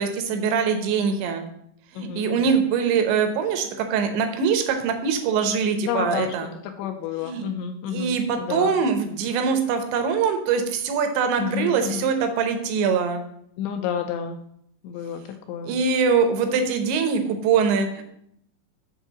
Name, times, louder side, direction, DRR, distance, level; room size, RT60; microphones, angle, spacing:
voice 1, 0.0-1.4 1.9-6.5 7.2-7.5 7.9-13.2 15.6-18.0, right 6 dB, 75° right, 6 dB, 3.0 m, -23 dB
voice 2, 2.0-2.6 5.9-6.3 6.6-8.8 11.4-12.1 13.6-14.4 14.8-15.2 15.5-15.7, left 8 dB, 85° left, 6 dB, 2.6 m, -30 dB
8.2 x 3.6 x 6.7 m, 0.73 s
omnidirectional pair, 5.5 m